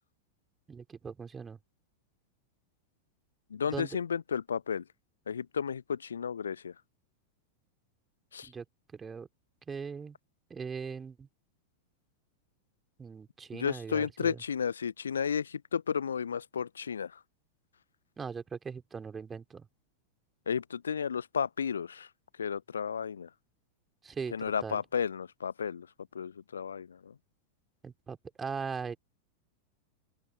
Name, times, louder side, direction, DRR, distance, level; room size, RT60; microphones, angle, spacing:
voice 1, 0.7-1.6 3.7-3.9 8.5-8.6 8.9-9.3 9.7-10.2 10.5-11.3 13.0-14.4 18.2-19.7 24.0-24.3 24.6-24.8 27.8-29.0, right 5 dB, 15° right, 3.6 m, -39 dB
voice 2, 3.5-4.8 5.3-6.7 8.3-8.5 13.5-17.2 20.5-22.1 22.4-23.3 24.3-25.9 26.1-27.1, left 7 dB, 70° left, 0.9 m, -33 dB
open air
figure-of-eight pair, 90°, 0 cm